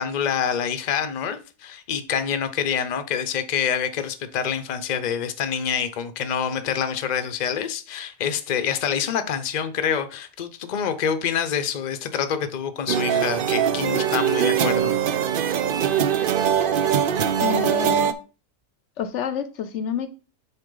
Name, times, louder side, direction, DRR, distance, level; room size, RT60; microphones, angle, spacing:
voice 1, 0.0-14.9, left 8 dB, 45° left, 0.7 m, -26 dB
sound 1, 12.9-18.1, right 8 dB, 55° right, 0.7 m, -22 dB
voice 2, 17.4-18.1 19.0-20.1, left 8 dB, 75° left, 0.9 m, -28 dB
8.1 x 4.6 x 3.8 m
omnidirectional pair, 1.3 m